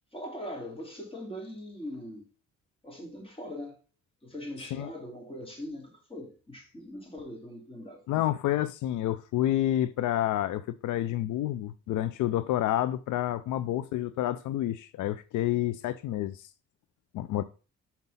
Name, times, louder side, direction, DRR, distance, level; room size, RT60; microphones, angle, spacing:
voice 1, 0.1-2.3 2.8-3.8 4.2-8.0, left 1 dB, 20° left, 3.6 m, -41 dB
voice 2, 8.1-16.5 17.1-17.4, left 13 dB, 80° left, 0.5 m, -29 dB
5.9 x 5.5 x 5.6 m
cardioid pair, 90°, 30 cm